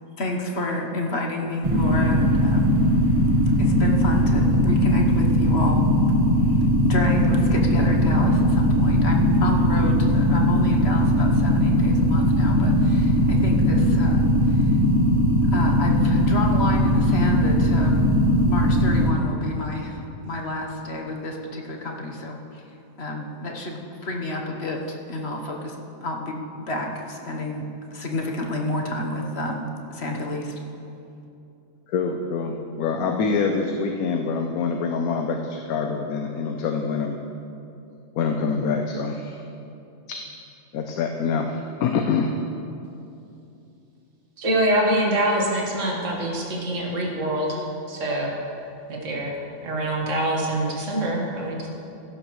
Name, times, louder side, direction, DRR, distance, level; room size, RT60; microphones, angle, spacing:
voice 1, 0.2-2.7 3.6-5.8 6.5-14.7 15.5-18.0 18.4-22.6 23.0-25.8 26.0-29.6 29.9-30.5, left 2 dB, 50° left, 1 dB, 1.3 m, -30 dB
sound 1, 1.6-19.1, equal, 25° right, 1.0 m, -19 dB
voice 2, 31.9-37.1 38.2-39.4 40.7-42.3, left 5 dB, 85° left, 4 dB, 1.2 m, -25 dB
voice 3, 44.4-48.3 48.9-49.3 49.6-51.7, right 1 dB, 60° right, -3 dB, 1.9 m, -25 dB
16.0 x 11.5 x 3.1 m, 2.7 s
omnidirectional pair, 1.5 m